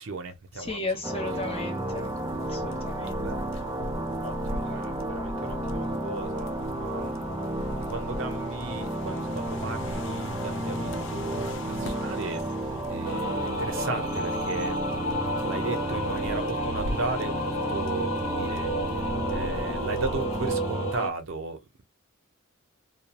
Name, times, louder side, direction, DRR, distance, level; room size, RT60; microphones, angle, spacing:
voice 1, 0.0-1.0 3.1-3.9 4.2-7.2 7.6-21.8, right 3 dB, 65° right, 0.6 m, -36 dB
voice 2, 0.6-2.1 2.5-3.2, left 2 dB, 25° left, 0.7 m, -34 dB
sound 1, 1.0-20.9, right 1 dB, 15° right, 0.4 m, -32 dB
sound 2, 1.2-20.5, left 2 dB, 60° left, 0.4 m, -40 dB
sound 3, 13.0-21.1, equal, 80° left, 1.0 m, -32 dB
2.4 x 2.0 x 2.8 m
head